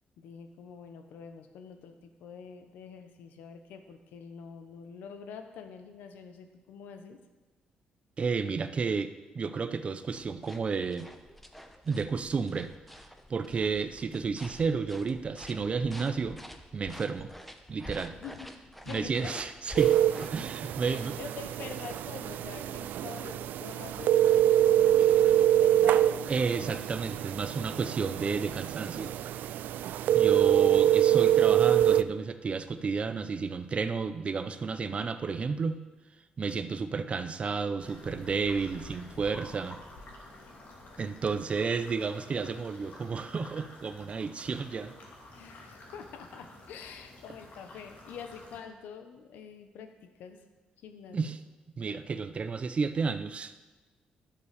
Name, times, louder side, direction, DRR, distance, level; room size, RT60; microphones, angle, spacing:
voice 1, 0.2-7.2 18.1-19.4 20.6-26.7 45.3-50.4 50.8-51.4, left 6 dB, 85° left, 7 dB, 1.2 m, -46 dB
voice 2, 8.2-11.1 11.8-12.7 13.3-16.4 16.7-17.3 17.7-18.2 18.9-20.0 20.3-21.1 26.3-29.1 30.1-35.8 36.4-39.8 41.0-44.9 51.1-51.4 51.8-53.5, right 5 dB, 40° right, 10 dB, 0.7 m, -31 dB
sound 1, 10.1-20.3, equal, 5° left, 1.1 m, -48 dB
sound 2, 19.8-32.0, right 11 dB, 80° right, 0.4 m, -25 dB
sound 3, 37.8-48.6, left 2 dB, 60° left, 2.8 m, -50 dB
11.5 x 7.2 x 6.8 m, 1.2 s
cardioid pair, 85°, 3 cm